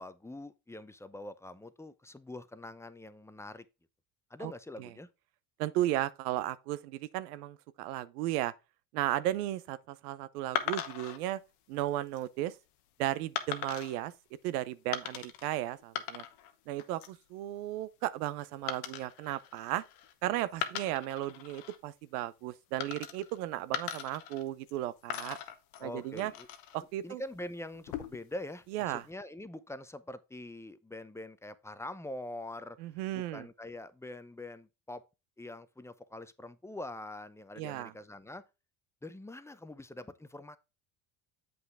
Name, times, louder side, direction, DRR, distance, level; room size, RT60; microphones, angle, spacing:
voice 1, 0.0-3.7 4.3-5.1 25.8-26.5 27.0-32.8 33.1-35.0 35.4-38.4 39.0-40.6, left 1 dB, 5° left, 0.6 m, -44 dB
voice 2, 5.6-8.5 8.9-11.4 11.7-12.5 13.0-14.1 14.4-16.2 16.7-19.8 20.2-25.4 25.8-26.3 26.7-27.2 28.7-29.0 32.8-33.5 37.6-37.9, right 14 dB, 90° right, 0.7 m, -35 dB
sound 1, 10.6-11.2 11.9-12.2 13.4-14.0 14.9-15.5 15.8-16.5 16.8-17.2 18.7-20.1 20.5-21.8 22.8-23.4 23.7-24.8 25.1-26.8 27.7-28.3, left 10 dB, 85° left, 1.1 m, -39 dB
7.8 x 5.7 x 3.4 m
supercardioid pair, 85°, 44 cm